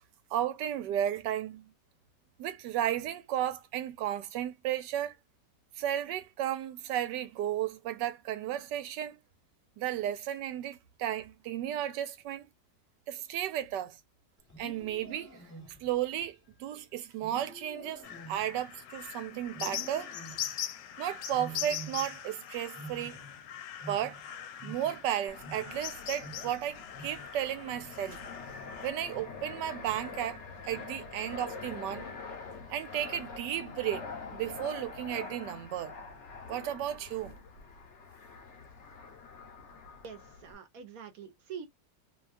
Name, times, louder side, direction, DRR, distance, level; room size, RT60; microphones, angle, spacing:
voice 1, 0.3-1.7 2.4-5.2 5.8-9.1 9.8-12.5 13.1-14.0 14.6-15.3 15.8-20.1 21.0-23.2 23.9-24.2 24.6-28.2 28.8-32.1 32.7-35.9 36.5-37.3, right 11 dB, 80° right, 1.2 m, -34 dB
Wild animals, 14.4-16.1 17.2-19.1 19.5-20.7 21.3-22.4 22.6-25.1 25.4-30.3 30.7-31.1 31.6-32.0 32.7-33.2, right 1 dB, 15° left, 0.8 m, -49 dB
sound 1, 18.0-28.9, left 10 dB, 85° left, 1.3 m, -42 dB
Fixed-wing aircraft airplane, 25.3-40.5, left 4 dB, 55° left, 0.9 m, -45 dB
voice 2, 40.0-41.7, right 7 dB, 65° right, 1.0 m, -45 dB
3.0 x 2.3 x 2.4 m
omnidirectional pair, 1.9 m